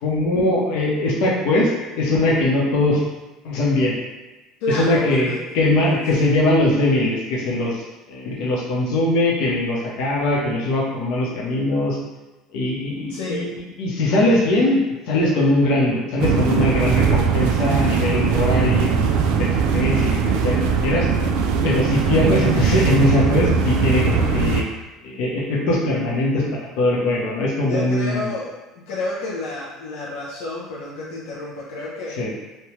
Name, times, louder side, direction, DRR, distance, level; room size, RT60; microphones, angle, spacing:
voice 1, 0.0-1.7 2.0-3.0 3.4-3.9 4.7-7.8 8.1-12.0 12.5-13.5 13.8-21.1 21.6-24.6 25.0-28.3 32.2-32.3, left 1 dB, 65° left, -4 dB, 0.8 m, -21 dB
voice 2, 4.6-5.4 5.8-6.0 13.1-13.5 27.7-28.6 28.9-32.2, left 1 dB, 90° left, -6 dB, 0.5 m, -29 dB
sound 1, 16.2-24.6, right 6 dB, 70° right, 0.3 m, -20 dB
3.2 x 2.2 x 2.9 m, 1.1 s
cardioid pair, 160°, 0 cm